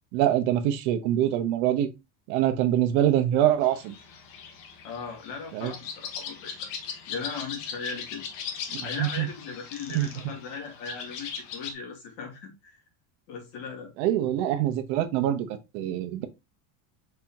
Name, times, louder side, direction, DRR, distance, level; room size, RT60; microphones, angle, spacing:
voice 1, 0.1-1.9 2.3-3.9 5.5-5.7 8.7-9.3 9.9-10.1 14.0-15.5 15.7-16.3, right 12 dB, 60° right, 1.0 m, -24 dB
sound 1, 3.6-11.7, left 7 dB, 85° left, 1.4 m, -39 dB
voice 2, 4.8-6.7 7.1-8.2 8.8-12.8 13.3-13.9, left 5 dB, 65° left, 2.2 m, -38 dB
4.5 x 4.0 x 2.9 m
cardioid pair, 170°, 38 cm